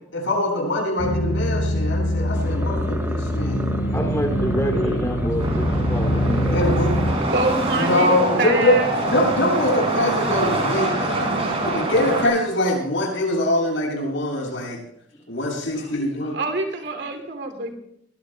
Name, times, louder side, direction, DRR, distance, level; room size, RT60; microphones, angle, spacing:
voice 1, 0.1-4.0 4.3-5.3 5.7-5.8 6.5-6.9 7.7-8.8 9.1-11.2 11.6-14.8 15.3-16.4, left 1 dB, 75° left, -1 dB, 7.2 m, -23 dB
sound 1, 1.0-7.1, equal, 55° left, 7.8 m, -24 dB
sound 2, 2.3-7.7, equal, 10° right, 1.2 m, -30 dB
voice 2, 3.9-6.6, equal, 15° left, 2 dB, 2.8 m, -27 dB
sound 3, 5.4-12.3, right 2 dB, 30° right, 5.6 m, -25 dB
voice 3, 7.3-9.0 16.3-17.7, right 2 dB, 60° right, 4 dB, 2.8 m, -26 dB
23.0 x 20.5 x 2.3 m, 0.76 s
head